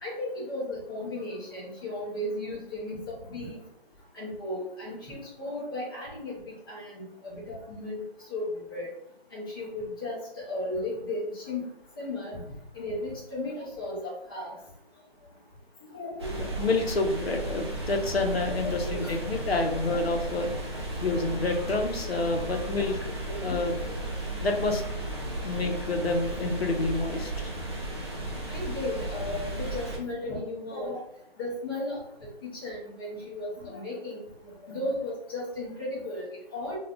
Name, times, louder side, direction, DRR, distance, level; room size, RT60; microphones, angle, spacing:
voice 1, 0.0-3.6 4.1-6.4 6.7-8.0 8.3-8.9 9.3-10.2 10.5-11.6 12.0-12.4 12.7-14.5 15.9-16.4 18.5-19.1 19.5-19.8 20.1-20.2 22.3-22.4 23.2-24.0 28.5-31.0 31.4-32.0 32.4-34.2 34.6-36.7, left 1 dB, 20° left, -6 dB, 0.8 m, -35 dB
sound 1, 16.2-30.0, right 1 dB, 25° right, 0.6 m, -35 dB
voice 2, 16.6-20.5 21.0-23.0 23.4-23.7 24.4-24.8 25.4-27.5, left 2 dB, 75° left, 4 dB, 0.8 m, -28 dB
3.3 x 2.4 x 2.4 m, 0.74 s
figure-of-eight pair, 160°, 31 cm